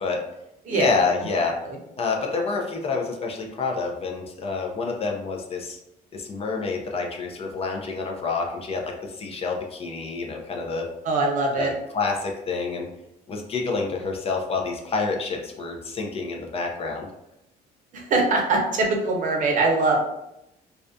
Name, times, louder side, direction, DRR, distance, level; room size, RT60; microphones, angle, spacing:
voice 1, 0.7-1.6 2.0-5.8 6.1-10.9 11.6-11.7 11.9-12.9 13.3-17.1, left 4 dB, 35° left, 1 dB, 0.4 m, -28 dB
voice 2, 11.0-11.7 17.9-20.0, right 3 dB, 50° right, 0 dB, 0.6 m, -22 dB
2.3 x 2.2 x 2.5 m, 0.85 s
cardioid pair, 110°, 17 cm